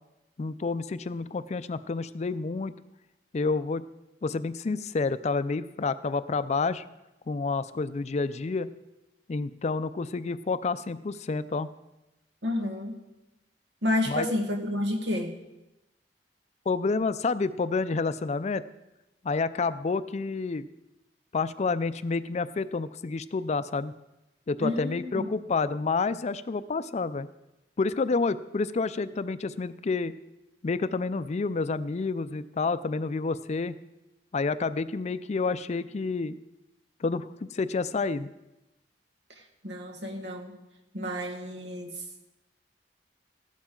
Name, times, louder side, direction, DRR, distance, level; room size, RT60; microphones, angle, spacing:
voice 1, 0.4-2.7 3.3-3.8 4.2-6.8 7.3-8.7 9.3-11.7 14.1-14.3 16.7-18.6 19.2-20.7 21.3-23.9 24.5-27.3 27.8-30.1 30.6-33.8 34.3-36.4 37.0-38.3, left 4 dB, 40° left, 14 dB, 0.4 m, -29 dB
voice 2, 12.4-13.0 13.8-15.3 24.6-25.3 39.4-40.6 40.9-42.0, left 1 dB, 85° right, 3 dB, 1.6 m, -30 dB
15.0 x 11.5 x 3.8 m, 0.97 s
head